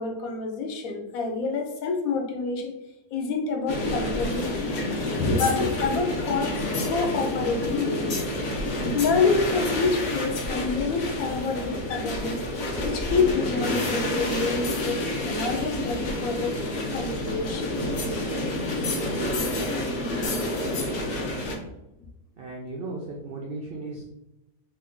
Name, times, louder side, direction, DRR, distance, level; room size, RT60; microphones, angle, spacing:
voice 1, 0.0-2.7 3.1-4.8 5.2-6.5 6.9-8.2 8.9-12.4 12.8-15.0 15.3-16.5 16.9-17.8, left 4 dB, 75° left, 3 dB, 1.0 m, -27 dB
sound 1, 3.7-21.5, left 1 dB, 60° left, 0.8 m, -29 dB
voice 2, 22.4-24.0, right 2 dB, 75° right, -1 dB, 0.5 m, -36 dB
3.1 x 2.5 x 3.5 m, 0.93 s
omnidirectional pair, 1.6 m